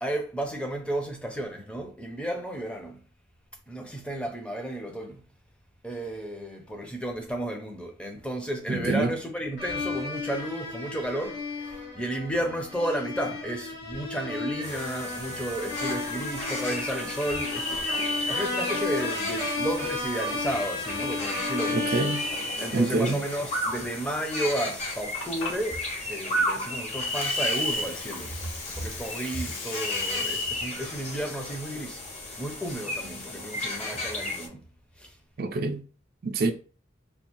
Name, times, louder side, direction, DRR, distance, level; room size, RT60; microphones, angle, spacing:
voice 1, 0.0-3.0 3.7-5.2 5.8-17.8 18.3-22.0 22.6-25.8 26.1-32.0 32.4-34.6 35.0-35.2, right 1 dB, 5° left, 0.6 m, -33 dB
voice 2, 8.7-9.1 21.7-22.3 22.7-23.3 35.4-35.8 36.2-36.5, right 3 dB, 50° right, 0.4 m, -26 dB
sound 1, 9.6-23.3, left 3 dB, 60° left, 1.4 m, -33 dB
sound 2, 14.6-34.5, left 1 dB, 35° left, 0.9 m, -33 dB
Water, 24.8-32.7, left 4 dB, 75° left, 0.7 m, -41 dB
3.4 x 2.4 x 3.0 m
head